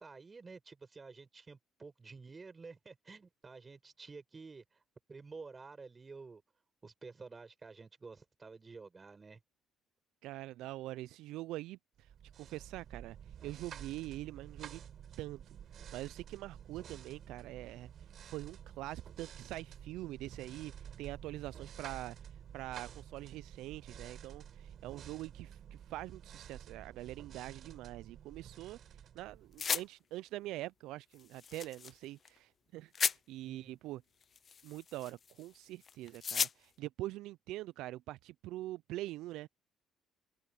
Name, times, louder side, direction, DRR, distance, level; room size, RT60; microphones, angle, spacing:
voice 1, 0.0-4.6 5.1-6.4 6.8-9.4 33.4-33.8, right 4 dB, 30° right, 6.2 m, -51 dB
voice 2, 10.2-13.2 13.4-14.8 15.2-15.4 15.9-22.2 22.5-34.0 34.6-39.5, right 16 dB, 80° right, 0.3 m, -44 dB
sound 1, 12.0-29.9, right 9 dB, 55° right, 5.4 m, -51 dB
sound 2, 29.6-29.8 31.2-31.9 32.2-32.3 32.9-33.2 34.2-35.4 35.8-36.5, left 6 dB, 45° left, 0.5 m, -35 dB
supercardioid pair, 80°, 0 cm